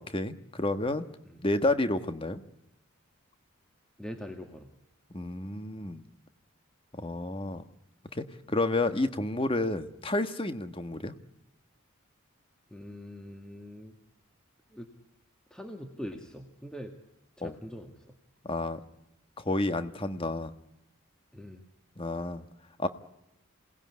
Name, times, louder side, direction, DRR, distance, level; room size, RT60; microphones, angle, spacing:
voice 1, 0.0-1.1 1.4-2.4 5.1-6.0 6.9-7.6 8.1-11.1 17.4-17.5 18.4-18.8 19.4-20.5 22.0-22.4 22.8-22.9, left 2 dB, 25° left, 9 dB, 1.4 m, -30 dB
voice 2, 4.0-4.7 12.7-13.9 14.7-14.9 15.5-16.9 17.4-17.9 21.3-21.6, equal, 5° left, 4 dB, 1.9 m, -42 dB
27.5 x 19.0 x 9.7 m, 0.87 s
head